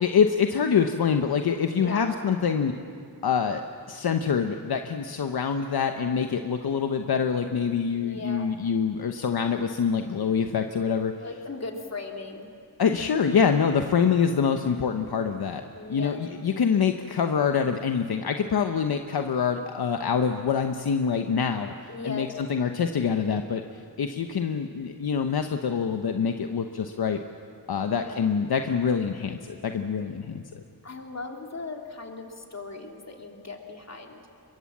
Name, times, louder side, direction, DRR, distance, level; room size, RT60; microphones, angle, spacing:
voice 1, 0.0-2.7 3.2-3.6 3.9-11.1 12.8-15.6 15.9-21.7 22.0-23.6 24.0-27.2 27.7-30.6, left 6 dB, 75° left, 6 dB, 1.0 m, -25 dB
voice 2, 1.8-2.1 7.9-8.5 11.2-12.5 15.7-16.2 21.9-22.3 27.8-28.2 30.8-34.2, left 3 dB, 45° left, 2 dB, 3.0 m, -38 dB
24.0 x 22.5 x 7.4 m, 2.2 s
cardioid pair, 70°, 38 cm